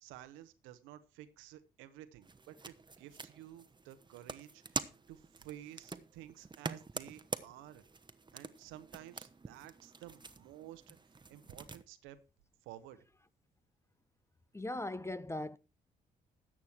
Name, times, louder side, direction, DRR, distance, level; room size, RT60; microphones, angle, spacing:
voice 1, 0.0-7.8 8.3-11.0 11.3-12.2 12.6-13.0, right 13 dB, 70° right, 1.0 m, -53 dB
sound 1, 2.2-11.8, right 4 dB, 20° right, 1.1 m, -46 dB
voice 2, 14.5-15.6, left 2 dB, 15° left, 0.6 m, -39 dB
13.5 x 8.5 x 4.6 m
hypercardioid pair, 40°, 21 cm